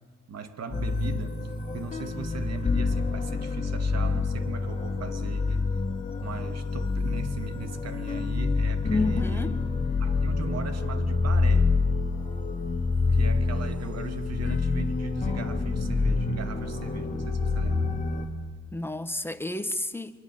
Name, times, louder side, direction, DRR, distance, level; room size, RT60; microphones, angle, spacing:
voice 1, 0.3-5.7 6.2-9.6 10.0-11.7 13.1-17.9, right 5 dB, 55° right, 8 dB, 2.6 m, -39 dB
sound 1, 0.7-18.3, left 3 dB, 25° left, 3.3 m, -27 dB
voice 2, 8.9-9.6 18.7-20.1, left 2 dB, 5° left, 10 dB, 1.6 m, -30 dB
24.5 x 23.5 x 7.9 m, 1.4 s
cardioid pair, 90°, 30 cm